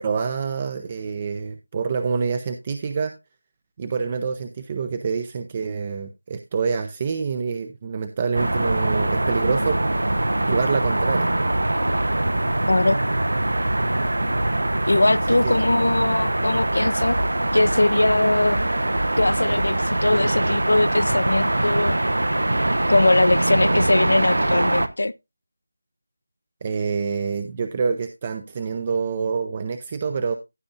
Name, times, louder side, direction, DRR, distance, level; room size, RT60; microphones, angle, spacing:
voice 1, 0.0-3.1 3.8-9.8 10.4-11.3 15.4-15.6 26.6-30.3, right 5 dB, 20° right, 0.5 m, -26 dB
sound 1, 8.3-24.9, right 1 dB, 85° right, 1.0 m, -23 dB
voice 2, 12.7-13.0 14.9-17.2 17.5-18.6 19.2-22.0 22.9-25.1, left 2 dB, 65° left, 0.5 m, -21 dB
15.0 x 7.1 x 2.5 m
figure-of-eight pair, 175°, 0 cm